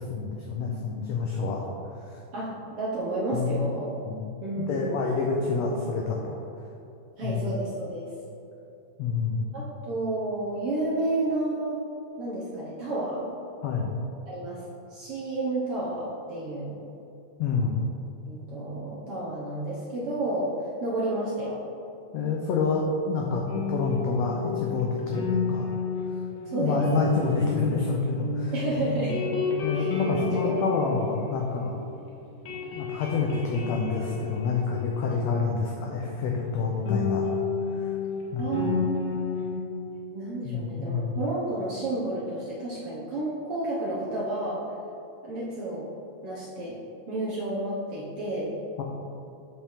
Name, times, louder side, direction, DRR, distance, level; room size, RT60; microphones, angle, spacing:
voice 1, 0.0-1.7 2.1-2.2 3.3-3.7 4.1-4.3 4.7-6.4 7.2-7.4 9.0-9.6 13.6-13.9 17.4-17.8 22.1-25.7 26.5-29.1 29.6-31.7 32.7-37.4 37.7-37.9 38.3-38.7 40.4-41.1 48.8-48.9, left 4 dB, 85° left, 0 dB, 1.5 m, -28 dB
voice 2, 2.3-3.9 4.4-5.0 7.2-8.1 9.5-11.8 12.2-13.3 14.3-14.6 14.9-16.8 18.3-20.5 20.8-21.6 26.4-26.8 28.5-29.3 29.7-30.5 38.4-39.2 40.1-44.6 45.2-45.9 46.2-46.8 47.1-48.5, right 2 dB, 65° right, -6 dB, 1.5 m, -31 dB
sound 1, 23.5-32.0 32.2-35.7 36.9-39.5, left 4 dB, 65° left, 2.2 m, -31 dB
7.1 x 6.0 x 3.5 m, 2.8 s
omnidirectional pair, 3.7 m